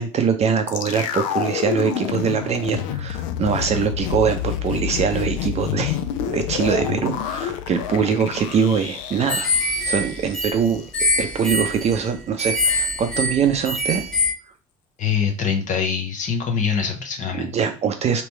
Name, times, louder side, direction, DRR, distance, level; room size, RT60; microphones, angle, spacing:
voice 1, 0.0-9.5 9.9-10.8 11.2-14.1 17.3-18.2, right 6 dB, 35° right, 7 dB, 0.6 m, -23 dB
sound 1, 0.7-10.8 11.1-11.2, left 10 dB, 65° left, 0.5 m, -28 dB
sound 2, 9.3-14.3, left 2 dB, 5° left, 1.0 m, -24 dB
voice 2, 15.0-17.5, left 6 dB, 45° left, 3 dB, 0.9 m, -24 dB
3.1 x 2.9 x 4.5 m, 0.34 s
figure-of-eight pair, 55°, 19 cm